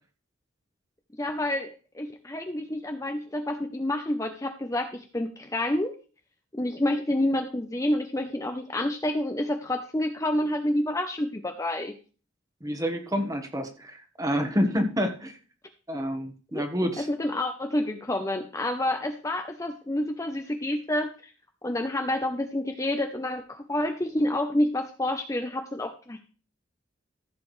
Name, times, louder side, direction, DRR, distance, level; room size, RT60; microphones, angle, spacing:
voice 1, 1.2-5.9 6.5-11.9 16.5-16.6 17.1-21.3 21.6-26.2, left 1 dB, 15° left, 5 dB, 0.7 m, -28 dB
voice 2, 12.6-15.3 15.9-17.1, equal, 15° right, 6 dB, 1.3 m, -28 dB
15.0 x 7.5 x 3.2 m, 0.37 s
head